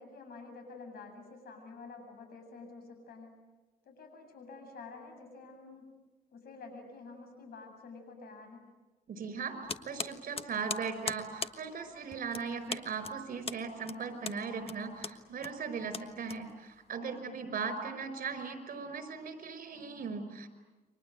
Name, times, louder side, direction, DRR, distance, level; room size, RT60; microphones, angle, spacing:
voice 1, 0.0-3.4 3.8-5.9 6.3-8.7 17.0-17.4, left 4 dB, 75° left, 6 dB, 8.0 m, -49 dB
voice 2, 9.1-9.6 9.8-20.5, right 5 dB, 60° right, 10 dB, 5.4 m, -38 dB
sound 1, 9.7-16.9, left 5 dB, 35° left, 1.3 m, -41 dB
29.5 x 24.5 x 8.0 m, 1.2 s
cardioid pair, 110°, 16 cm